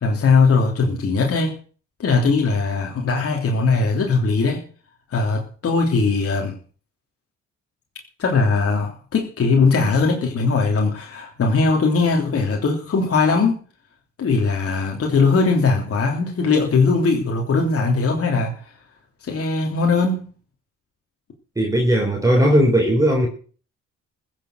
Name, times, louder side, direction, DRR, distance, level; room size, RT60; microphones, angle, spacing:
voice 1, 0.0-1.6 2.0-4.6 5.1-6.6 8.2-13.6 14.2-18.6 19.2-20.3, left 4 dB, 50° left, 3.3 m, -20 dB
voice 2, 21.6-23.3, equal, 10° right, 4.0 m, -17 dB
15.0 x 7.6 x 7.8 m
cardioid pair, 90°, 30 cm